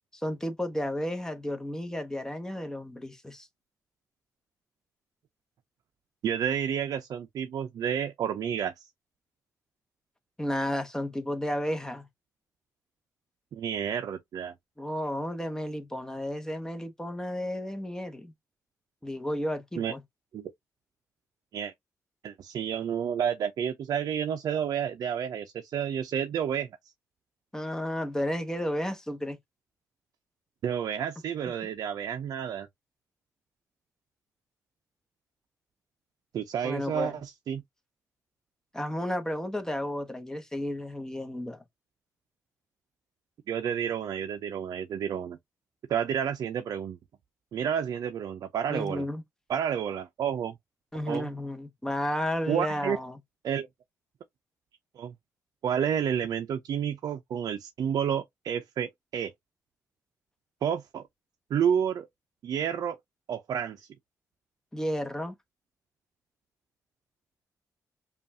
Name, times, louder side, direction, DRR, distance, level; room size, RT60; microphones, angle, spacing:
voice 1, 0.1-3.5 10.4-12.1 14.8-18.3 19.0-20.0 27.5-29.4 36.6-37.2 38.7-41.6 48.7-49.2 50.9-53.2 64.7-65.4, left 1 dB, 10° left, 1.0 m, -32 dB
voice 2, 6.2-8.7 13.5-14.5 19.8-19.9 20.3-20.5 21.5-21.7 22.2-26.7 30.6-32.7 36.3-37.6 43.5-45.4 45.9-47.0 47.5-49.1 49.5-50.5 51.1-51.3 52.5-53.0 53.4-53.7 55.0-55.1 55.6-59.3 60.6-61.0 61.5-62.1 62.4-63.0 63.3-63.9, right 8 dB, 70° right, 0.5 m, -30 dB
5.2 x 2.4 x 2.7 m
cardioid pair, 80°, 7 cm